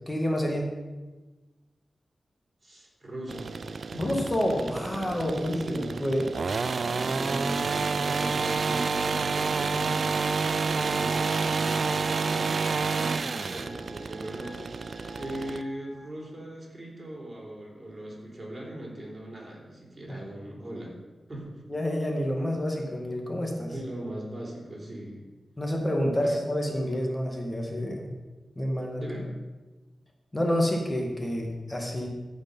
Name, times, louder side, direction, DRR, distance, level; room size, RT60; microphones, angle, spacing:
voice 1, 0.1-0.7 4.0-6.3 20.1-20.2 21.7-23.7 25.6-28.1 28.6-29.1 30.3-32.1, equal, 20° left, 1 dB, 1.9 m, -28 dB
voice 2, 2.6-4.3 5.6-6.0 7.0-20.9 21.3-21.6 23.7-25.3 26.2-26.4 29.0-29.3, right 1 dB, 35° right, -3 dB, 3.8 m, -39 dB
sound 1, 3.3-15.6, right 4 dB, 65° right, 0.4 m, -29 dB
Wind instrument woodwind instrument, 10.9-16.2, left 3 dB, 80° left, 1.8 m, -46 dB
14.0 x 5.3 x 5.6 m, 1.2 s
cardioid pair, 70°, 0 cm